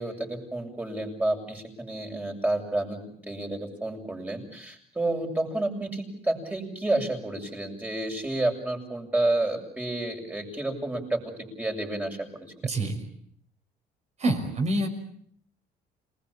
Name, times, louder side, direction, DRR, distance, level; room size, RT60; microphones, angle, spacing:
voice 1, 0.0-3.0 3.3-12.5, right 2 dB, 10° right, 2 dB, 7.6 m, -30 dB
voice 2, 12.6-13.1 14.2-14.9, right 2 dB, 40° right, 5 dB, 6.1 m, -26 dB
27.5 x 21.0 x 8.6 m, 0.64 s
cardioid pair, 110°, 17 cm